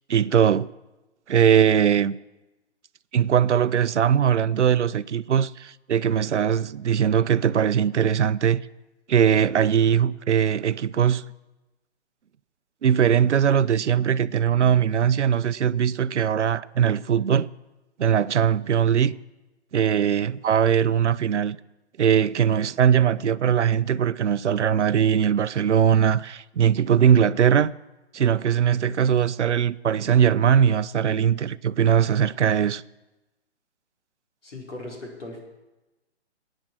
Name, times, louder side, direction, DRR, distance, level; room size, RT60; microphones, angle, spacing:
voice 1, 0.1-0.7 1.3-2.2 3.1-8.6 9.1-11.2 12.8-17.5 18.0-19.1 19.7-21.6 22.0-27.7 28.1-32.8, right 8 dB, 85° right, 0.6 m, -20 dB
voice 2, 34.4-35.4, left 2 dB, 90° left, 4.7 m, -38 dB
16.5 x 8.9 x 6.0 m
hypercardioid pair, 150°, 35 cm